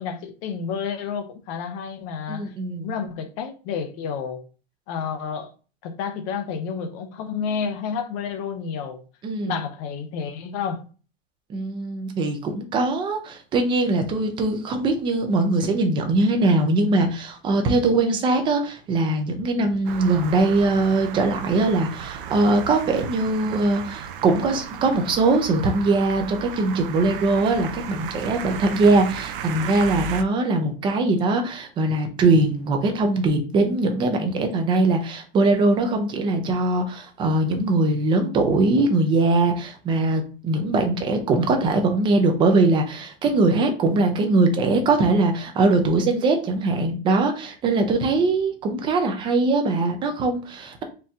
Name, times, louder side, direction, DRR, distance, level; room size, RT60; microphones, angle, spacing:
voice 1, 0.0-2.5 2.8-4.4 4.9-5.5 5.8-9.0 9.5-10.8, left 6 dB, 35° left, 0.6 m, -30 dB
voice 2, 2.3-2.9 9.2-9.6 11.5-50.8, right 2 dB, 15° right, 0.5 m, -21 dB
sound 1, 19.9-30.2, right 8 dB, 65° right, 0.6 m, -35 dB
4.3 x 2.6 x 3.5 m
supercardioid pair, 165°, 30 cm